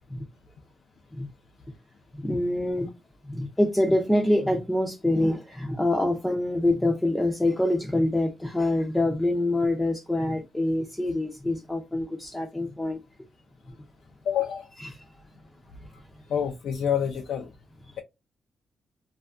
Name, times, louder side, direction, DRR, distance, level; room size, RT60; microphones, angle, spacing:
voice 1, 2.1-2.9 3.3-13.0 14.8-15.1 15.8-15.9, left 1 dB, 10° left, 0.4 m, -25 dB
voice 2, 14.2-14.7 16.3-17.5, left 8 dB, 85° left, 0.3 m, -27 dB
2.6 x 2.3 x 2.4 m
cardioid pair, 105°, 0 cm